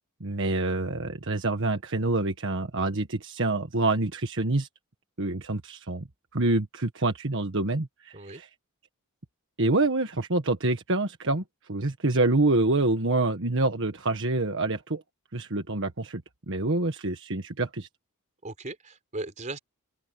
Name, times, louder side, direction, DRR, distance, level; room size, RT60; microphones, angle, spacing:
voice 1, 0.2-4.7 5.2-6.1 6.3-8.5 9.6-11.4 11.7-15.0 15.3-16.2 16.5-17.9, right 2 dB, 60° right, 1.5 m, -26 dB
voice 2, 18.4-19.6, right 2 dB, 35° right, 4.2 m, -37 dB
open air
head